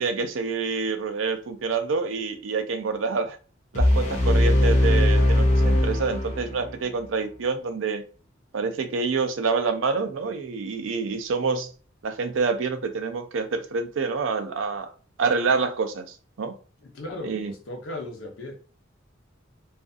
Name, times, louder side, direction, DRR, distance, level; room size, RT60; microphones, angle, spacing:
voice 1, 0.0-3.4 3.7-8.0 8.5-11.7 12.0-14.9 15.2-16.1 16.4-16.5 17.2-17.5, right 4 dB, 75° right, 0.4 m, -27 dB
sound 1, 3.7-6.8, left 1 dB, 40° left, 0.6 m, -20 dB
voice 2, 16.8-18.7, left 2 dB, 85° left, 0.8 m, -37 dB
2.5 x 2.3 x 2.5 m
head